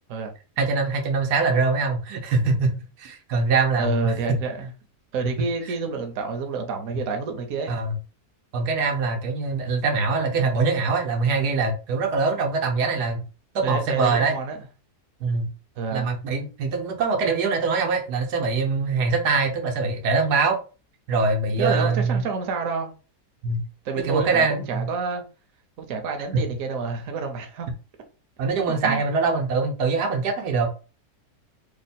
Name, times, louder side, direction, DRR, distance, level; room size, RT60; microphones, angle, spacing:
voice 1, 0.6-4.4 7.7-8.0 8.5-13.2 13.5-14.3 15.2-15.5 15.9-20.6 21.1-22.2 23.4-23.6 24.0-24.9 26.3-26.4 28.4-30.7, right 4 dB, 85° right, 1.4 m, -23 dB
voice 2, 3.8-4.7 5.1-7.7 13.6-14.6 15.8-16.1 21.6-22.9 23.8-25.2 25.8-27.7 28.7-29.0, right 5 dB, 65° right, 1.1 m, -28 dB
3.1 x 2.2 x 4.2 m
omnidirectional pair, 1.6 m